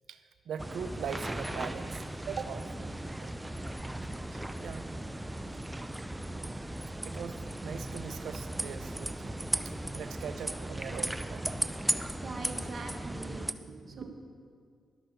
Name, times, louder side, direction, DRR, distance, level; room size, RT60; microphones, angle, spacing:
voice 1, 0.1-2.9 3.2-3.3 4.3-4.9 7.0-9.4 9.6-11.4, right 7 dB, 75° right, 10 dB, 0.6 m, -41 dB
sound 1, 0.6-13.5, right 1 dB, 10° right, 0.5 m, -36 dB
voice 2, 12.0-14.1, right 4 dB, 50° right, 3 dB, 1.3 m, -44 dB
11.5 x 6.1 x 6.7 m, 2.1 s
supercardioid pair, 50°, 0 cm